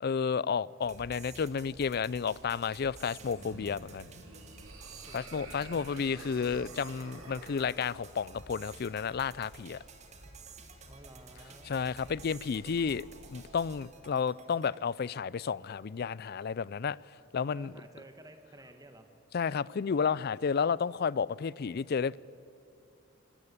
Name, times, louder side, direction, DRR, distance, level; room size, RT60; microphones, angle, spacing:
voice 1, 0.0-4.1 5.1-9.8 11.7-17.0 17.3-17.7 19.3-22.2, left 6 dB, 50° left, 0.4 m, -32 dB
sound 1, 0.8-14.8, right 3 dB, 35° right, 2.0 m, -51 dB
sound 2, 3.0-7.8, right 3 dB, 80° right, 3.0 m, -50 dB
voice 2, 5.1-5.9 10.9-11.7 12.1-12.2 17.5-19.1, right 1 dB, 20° right, 1.2 m, -53 dB
27.5 x 13.5 x 8.5 m
head